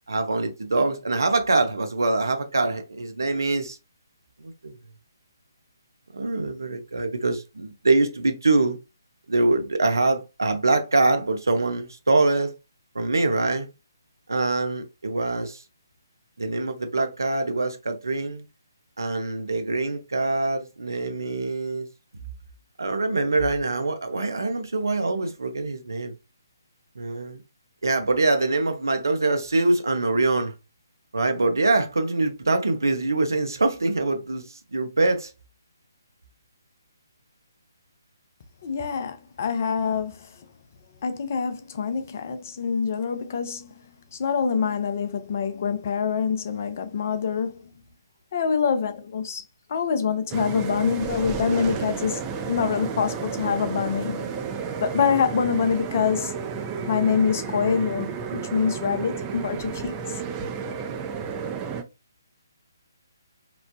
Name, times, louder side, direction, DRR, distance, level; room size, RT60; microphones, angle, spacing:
voice 1, 0.1-3.8 4.4-4.8 6.1-8.8 9.3-12.5 12.9-13.7 14.3-15.6 16.4-18.4 19.0-21.9 22.8-26.1 27.0-27.4 27.8-30.5 31.1-35.3, right 2 dB, 70° right, 0.7 m, -24 dB
voice 2, 38.6-40.4 41.0-43.8 44.1-47.7 48.3-49.4 49.7-52.2 52.5-54.4 54.8-56.3 56.9-60.2, left 6 dB, 40° left, 0.5 m, -25 dB
sound 1, 50.3-61.8, right 6 dB, 15° right, 0.4 m, -32 dB
3.0 x 2.0 x 2.6 m
figure-of-eight pair, 140°, 2 cm